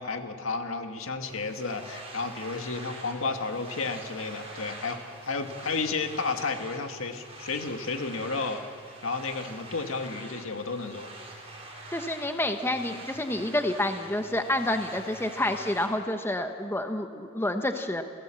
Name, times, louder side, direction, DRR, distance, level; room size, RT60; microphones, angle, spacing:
voice 1, 0.0-5.0 5.3-8.6 9.0-11.1, left 4 dB, 85° left, 5 dB, 1.8 m, -32 dB
sound 1, 1.3-15.9, right 2 dB, 30° right, 4.7 m, -45 dB
voice 2, 11.9-18.0, left 1 dB, 10° left, 6 dB, 1.0 m, -29 dB
29.5 x 16.5 x 7.7 m, 2.3 s
head